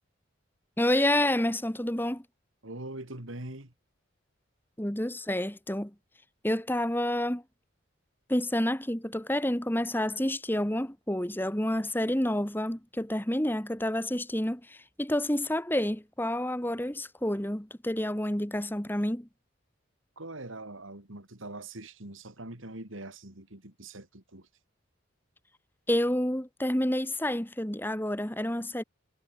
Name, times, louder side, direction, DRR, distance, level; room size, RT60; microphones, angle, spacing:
voice 1, 0.8-2.2 4.8-5.9 6.4-7.4 8.3-19.3 25.9-28.8, left 1 dB, 10° left, 1.5 m, -29 dB
voice 2, 2.6-3.7 20.2-24.5, right 2 dB, 75° right, 3.5 m, -42 dB
head